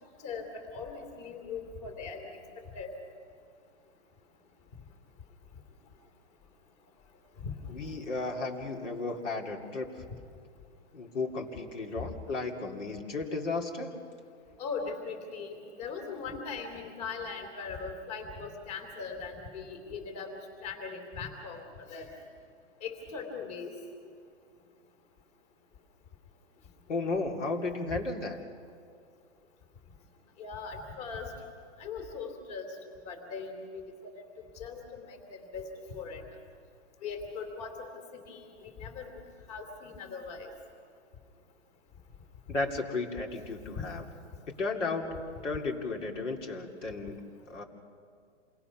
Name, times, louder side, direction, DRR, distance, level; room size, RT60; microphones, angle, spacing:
voice 1, 0.2-2.3 2.7-2.9 7.4-7.9 14.6-20.3 20.6-22.1 22.8-23.7 27.9-28.0 30.4-31.3 31.8-32.8 33.0-34.2 34.5-36.2 37.0-39.1 39.5-40.5, left 5 dB, 35° left, 5 dB, 2.9 m, -40 dB
voice 2, 7.7-9.9 10.9-14.0 26.9-28.4 42.5-44.0 44.5-45.0 45.4-47.6, left 3 dB, 80° left, 2 dB, 3.0 m, -34 dB
28.0 x 20.5 x 5.9 m, 2.3 s
hypercardioid pair, 160°, 36 cm